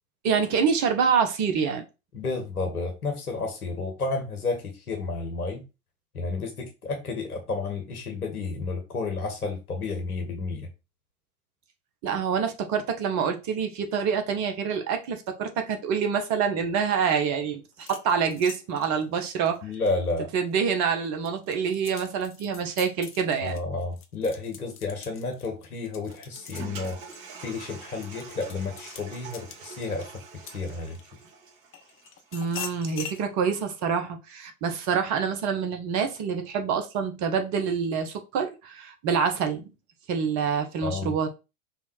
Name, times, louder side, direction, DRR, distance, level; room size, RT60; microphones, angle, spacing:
voice 1, 0.2-1.8 12.0-19.6 20.3-23.6 32.3-39.7 40.1-41.3, right 6 dB, 40° right, 1.5 m, -26 dB
voice 2, 2.1-5.6 6.1-10.7 19.6-20.3 23.4-27.0 27.4-30.1 30.5-31.0 40.8-41.1, left 3 dB, 85° left, 1.7 m, -31 dB
sound 1, 17.7-20.6 21.0-31.2 31.7-33.2, left 8 dB, 30° left, 1.1 m, -44 dB
Toilet flush, 26.1-33.0, right 5 dB, 65° right, 3.0 m, -45 dB
5.6 x 3.6 x 4.6 m
hypercardioid pair, 95°, 43 cm